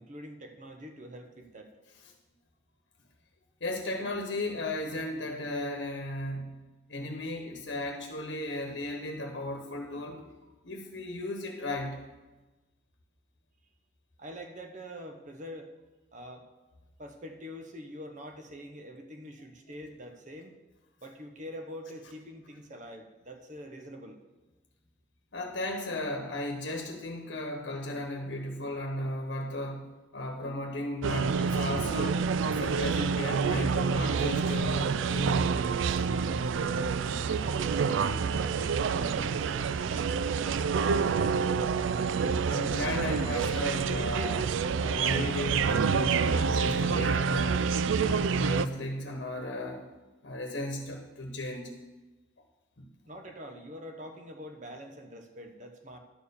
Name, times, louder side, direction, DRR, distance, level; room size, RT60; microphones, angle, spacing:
voice 1, 0.0-1.7 14.2-15.7 16.1-16.4 17.0-20.5 21.0-24.2 37.2-41.5 53.0-56.0, equal, 40° right, 5 dB, 0.8 m, -45 dB
voice 2, 3.6-6.6 6.9-10.3 10.6-12.1 25.3-35.6 42.5-47.7 48.0-49.8 50.2-51.7 52.8-52.9, left 1 dB, 70° left, 3 dB, 1.1 m, -35 dB
sound 1, 31.0-48.7, right 6 dB, 85° right, 0.4 m, -28 dB
11.0 x 4.4 x 6.9 m, 1.2 s
head